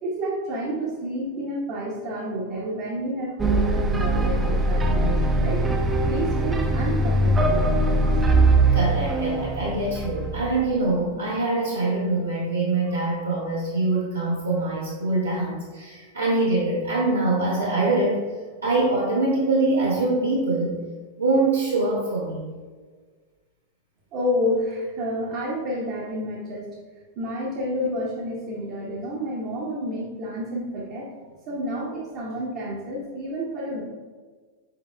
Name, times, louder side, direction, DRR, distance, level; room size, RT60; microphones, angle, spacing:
voice 1, 0.0-5.6 6.1-8.2 24.1-26.7 27.2-31.1 31.5-33.8, equal, 40° right, -4 dB, 0.8 m, -29 dB
sound 1, 3.4-10.7, right 2 dB, 15° right, 0.4 m, -21 dB
voice 2, 8.7-18.2 18.6-20.8 21.2-22.5, right 2 dB, 80° right, -7 dB, 0.9 m, -24 dB
4.8 x 4.7 x 2.2 m, 1.5 s
figure-of-eight pair, 90°, 0 cm